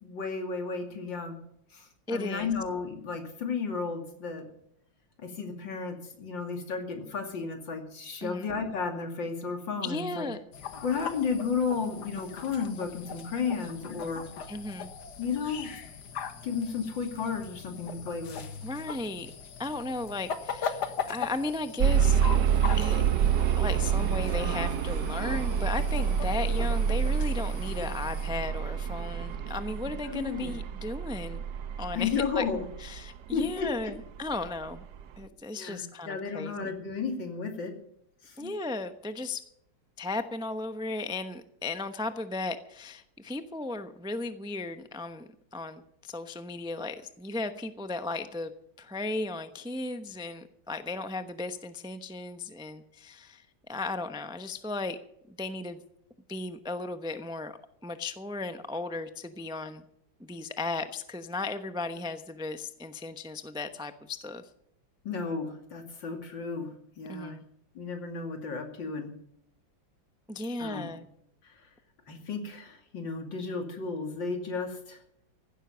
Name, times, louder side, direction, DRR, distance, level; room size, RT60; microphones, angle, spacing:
voice 1, 0.0-1.4 1.7-4.5 5.2-10.3 10.8-14.2 15.2-15.7 16.4-18.4 30.1-30.5 31.9-32.6 33.3-33.7 35.5-37.7 38.2-38.5 65.0-66.7 67.0-67.4 67.7-69.1 70.6-70.9 72.1-75.0, left 5 dB, 80° left, 4 dB, 3.3 m, -33 dB
voice 2, 2.1-2.5 8.2-8.5 9.8-10.4 14.5-14.9 18.6-19.3 19.6-22.2 22.7-23.0 23.6-31.4 31.8-32.5 32.8-34.8 35.2-36.7 38.4-39.4 40.0-55.0 55.3-55.8 56.3-57.6 57.8-59.8 60.2-64.5 67.1-67.4 70.3-71.1, left 2 dB, 5° right, 9 dB, 0.4 m, -35 dB
sound 1, 10.5-28.3, left 6 dB, 65° left, 1.8 m, -40 dB
sound 2, 21.8-33.7 34.4-34.5 35.0-35.1, right 8 dB, 70° right, 1.4 m, -27 dB
16.0 x 12.0 x 5.6 m, 0.73 s
omnidirectional pair, 2.0 m